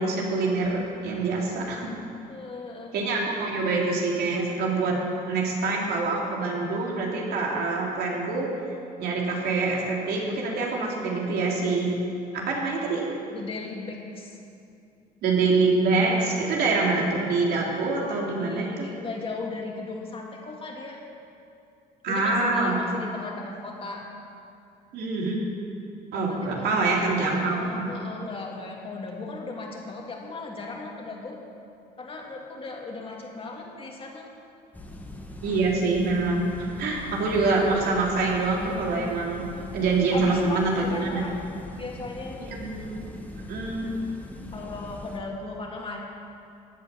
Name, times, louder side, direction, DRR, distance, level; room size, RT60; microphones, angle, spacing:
voice 1, 0.0-1.9 2.9-4.9 5.3-8.5 9.0-11.9 12.3-13.0 15.2-18.9 22.0-22.8 24.9-25.4 26.1-27.8 35.4-39.5 39.7-41.2 42.5-43.0 43.3-43.9, right 3 dB, 70° right, -2 dB, 3.1 m, -25 dB
voice 2, 2.3-2.9 5.3-5.6 13.3-14.4 18.4-21.0 22.1-24.1 26.1-27.0 27.3-31.4 32.0-34.3 39.5-41.3 41.7-42.5 44.5-46.1, left 3 dB, 35° left, -1 dB, 2.5 m, -37 dB
sound 1, 34.7-45.2, left 1 dB, 10° left, 2.0 m, -41 dB
15.5 x 9.0 x 7.3 m, 2.6 s
cardioid pair, 110°, 17 cm